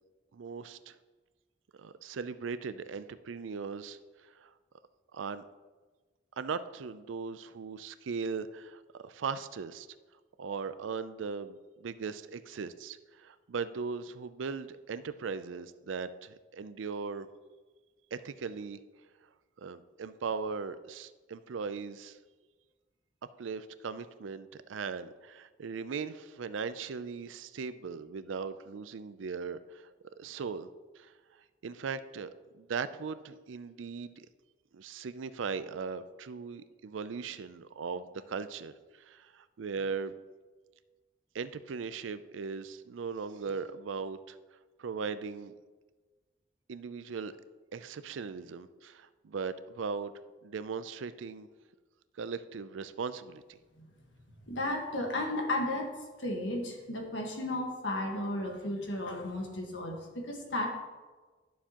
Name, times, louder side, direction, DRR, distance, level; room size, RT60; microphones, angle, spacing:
voice 1, 0.3-1.0 1.8-4.5 5.1-5.4 6.4-9.9 10.4-17.3 18.1-18.8 19.6-22.2 23.4-29.9 30.2-30.7 31.0-31.1 31.6-32.3 32.6-34.3 34.7-40.1 41.3-44.4 44.8-45.6 46.7-47.4 47.7-50.1 50.4-51.5 52.2-53.6, right 5 dB, 90° right, 13 dB, 0.4 m, -38 dB
voice 2, 54.5-60.7, left 1 dB, 80° left, 1 dB, 1.4 m, -34 dB
11.0 x 7.0 x 2.9 m, 1.3 s
head